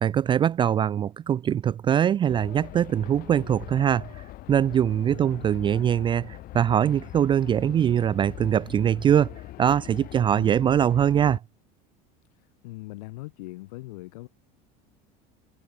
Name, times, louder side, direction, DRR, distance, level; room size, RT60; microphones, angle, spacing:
voice 1, 0.0-11.4, right 9 dB, 25° right, 0.5 m, -23 dB
sound 1, 2.3-11.4, left 16 dB, 50° left, 5.2 m, -42 dB
voice 2, 5.1-5.5 10.3-10.6 12.3-14.3, left 21 dB, 90° left, 6.6 m, -41 dB
cardioid pair, 140°, 20 cm